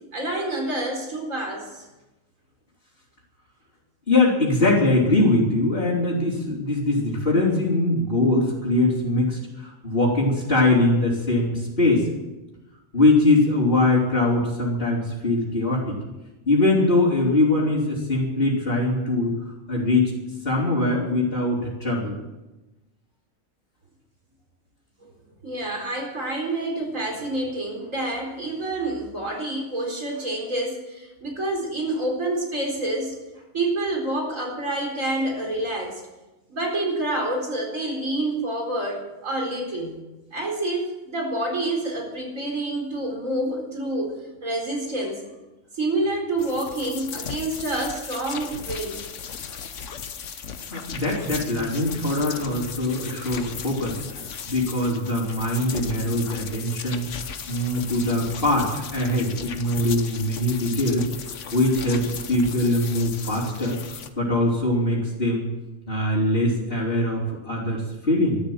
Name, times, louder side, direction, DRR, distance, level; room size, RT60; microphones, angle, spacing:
voice 1, 0.1-1.8 25.4-33.2 33.5-36.0 36.5-40.0 40.3-44.1 44.4-45.2 45.7-49.0, right 2 dB, 75° right, 1 dB, 4.5 m, -28 dB
voice 2, 4.1-12.1 12.9-15.9 16.5-19.3 19.7-20.1 20.4-22.2 50.7-54.0 54.5-61.1 61.5-65.5 65.9-68.4, left 2 dB, 45° left, -7 dB, 4.0 m, -22 dB
sound 1, 46.4-64.1, left 7 dB, 65° left, 1.3 m, -36 dB
13.5 x 13.5 x 8.0 m, 1.1 s
omnidirectional pair, 1.4 m